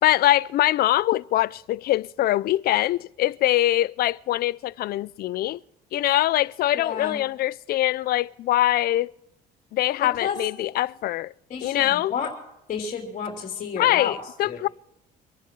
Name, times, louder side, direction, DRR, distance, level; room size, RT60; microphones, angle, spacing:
voice 1, 0.0-5.6 5.9-9.1 9.7-11.3 11.6-12.1 13.8-14.7, left 14 dB, 65° left, 0.5 m, -23 dB
voice 2, 6.7-7.2 10.2-10.4 11.5-12.3 12.7-14.2 14.4-14.6, left 7 dB, 45° left, 3.4 m, -31 dB
25.0 x 10.5 x 4.7 m
cardioid pair, 110°, 17 cm